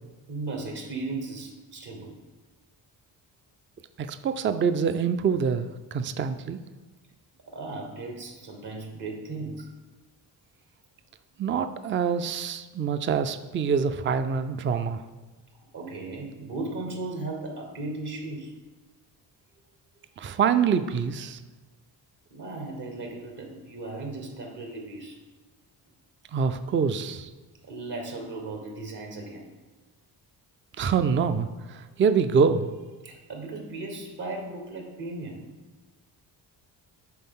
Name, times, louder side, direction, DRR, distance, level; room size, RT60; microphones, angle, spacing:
voice 1, 0.3-2.1 7.5-9.7 15.7-18.5 22.3-25.2 27.6-29.5 33.0-35.5, right 2 dB, 65° right, 2 dB, 1.4 m, -36 dB
voice 2, 4.0-6.6 11.4-15.0 20.2-21.4 26.3-27.3 30.8-32.7, right 6 dB, 30° right, 11 dB, 0.4 m, -25 dB
8.6 x 3.5 x 3.7 m, 1.3 s
cardioid pair, 65°, 44 cm